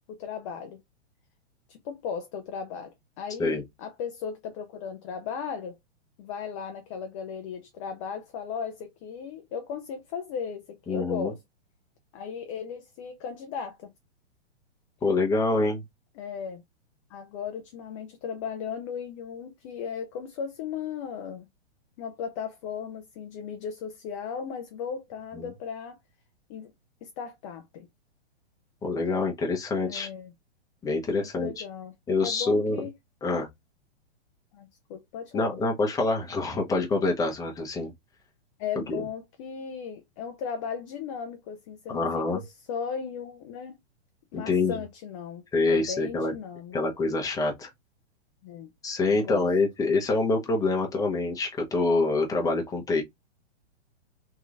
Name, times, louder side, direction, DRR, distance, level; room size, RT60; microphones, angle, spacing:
voice 1, 0.1-0.8 1.7-5.8 6.2-11.4 12.1-13.9 16.2-16.6 17.1-21.5 22.0-26.0 26.5-26.7 27.0-27.9 29.8-30.3 31.1-32.9 34.5-35.6 38.6-43.7 44.3-46.8 48.4-48.7 49.1-49.5, left 7 dB, 30° left, 0.5 m, -36 dB
voice 2, 10.9-11.3 15.0-15.8 25.3-25.5 28.8-30.1 30.8-31.6 32.1-32.9 33.2-33.5 35.3-37.9 38.9-39.0 41.9-42.4 44.3-44.8 45.5-46.3 46.7-47.7 48.8-53.0, left 3 dB, 10° left, 0.9 m, -26 dB
3.7 x 3.1 x 2.5 m
hypercardioid pair, 135°, 34 cm